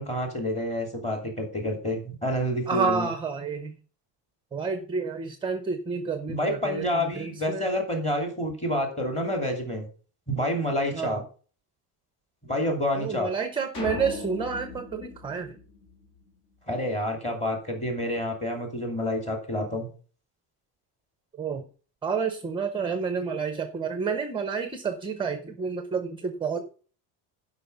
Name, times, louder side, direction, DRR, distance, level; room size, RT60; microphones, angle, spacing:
voice 1, 0.0-3.1 6.3-9.9 10.3-11.2 12.4-13.3 16.7-19.9, left 1 dB, 15° left, 2 dB, 2.6 m, -28 dB
voice 2, 2.7-3.7 4.5-7.7 10.9-11.2 13.0-15.6 21.4-21.7 22.0-26.6, right 5 dB, 10° right, 8 dB, 0.6 m, -29 dB
sound 1, 13.7-16.3, left 3 dB, 50° left, 3.2 m, -38 dB
11.5 x 5.7 x 5.3 m, 0.39 s
cardioid pair, 175°, 47 cm